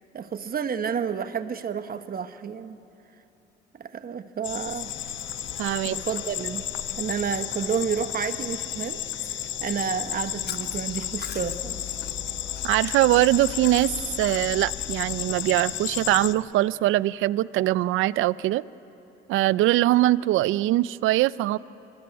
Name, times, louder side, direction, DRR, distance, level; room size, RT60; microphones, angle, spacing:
voice 1, 0.1-2.8 3.8-4.9 5.8-6.6 7.0-11.8, right 7 dB, 50° right, 10 dB, 1.1 m, -30 dB
sound 1, 4.4-16.3, left 11 dB, 75° left, 0.8 m, -33 dB
sound 2, 4.8-16.5, left 2 dB, 30° left, 4.3 m, -48 dB
voice 2, 5.6-5.9 12.6-13.9 14.2-18.6 19.3-21.6, right 16 dB, 85° right, 19 dB, 0.4 m, -22 dB
Chewing mastication, 10.0-15.3, left 9 dB, 55° left, 1.1 m, -40 dB
24.5 x 17.0 x 9.7 m, 3.0 s
cardioid pair, 90°, 20 cm